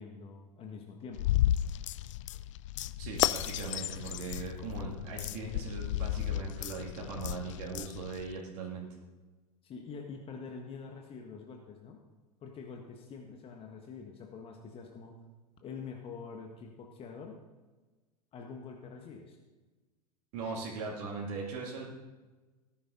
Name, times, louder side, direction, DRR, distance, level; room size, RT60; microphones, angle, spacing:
voice 1, 0.0-1.3 9.6-12.0 12.4-15.2 15.6-17.4 18.3-19.4, left 5 dB, 30° left, 3 dB, 1.6 m, -45 dB
sound 1, 1.1-8.3, left 13 dB, 50° left, 0.4 m, -33 dB
voice 2, 3.0-8.9 20.3-21.8, right 4 dB, 45° right, -2 dB, 2.5 m, -39 dB
18.5 x 10.0 x 3.9 m, 1.2 s
figure-of-eight pair, 90°, 20 cm